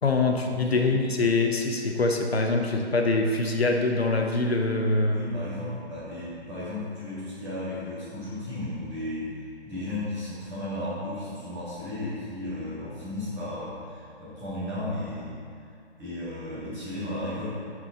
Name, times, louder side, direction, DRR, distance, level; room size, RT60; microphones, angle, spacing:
voice 1, 0.0-5.2, left 3 dB, 65° left, 3 dB, 1.0 m, -24 dB
voice 2, 0.5-0.9 5.1-9.3 9.6-15.3 16.0-17.5, left 1 dB, 5° right, -13 dB, 1.5 m, -34 dB
9.0 x 5.0 x 3.7 m, 2.3 s
figure-of-eight pair, 155°, 34 cm